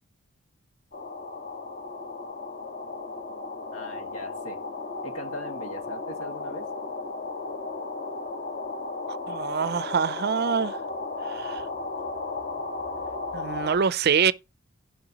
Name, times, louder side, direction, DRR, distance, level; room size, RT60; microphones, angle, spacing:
sound 1, 0.9-13.8, left 3 dB, 40° left, 1.6 m, -35 dB
voice 1, 3.7-4.6 5.0-6.7, equal, 80° left, 1.7 m, -40 dB
voice 2, 9.1-10.8 11.3-11.6 13.3-14.3, right 6 dB, 45° right, 0.4 m, -25 dB
16.0 x 5.5 x 2.9 m
head